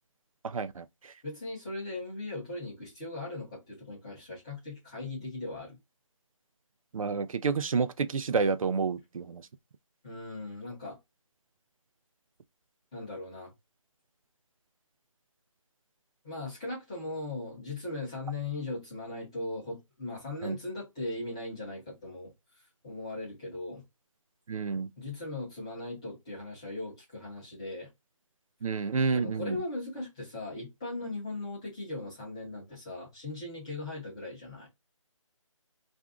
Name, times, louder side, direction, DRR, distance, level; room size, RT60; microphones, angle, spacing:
voice 1, 0.4-1.1 6.9-9.4 20.4-20.6 24.5-24.9 28.6-29.6, right 5 dB, 85° right, 0.4 m, -29 dB
voice 2, 1.2-5.8 10.0-11.0 12.9-13.5 16.2-22.3 22.8-23.8 25.0-27.9 29.1-34.7, left 2 dB, 10° left, 0.7 m, -38 dB
2.5 x 2.2 x 3.5 m
figure-of-eight pair, 175°, 17 cm